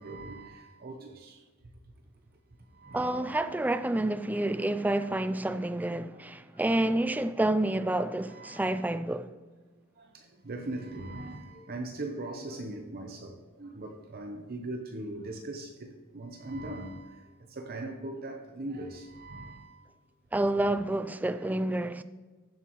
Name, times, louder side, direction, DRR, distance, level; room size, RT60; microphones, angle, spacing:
voice 1, 0.0-1.4 2.6-3.2 6.5-6.6 8.2-8.7 10.0-19.8, right 2 dB, 45° right, 0.7 m, -40 dB
voice 2, 2.9-9.3 20.3-22.0, right 1 dB, 10° right, 0.3 m, -29 dB
14.5 x 7.5 x 3.1 m
head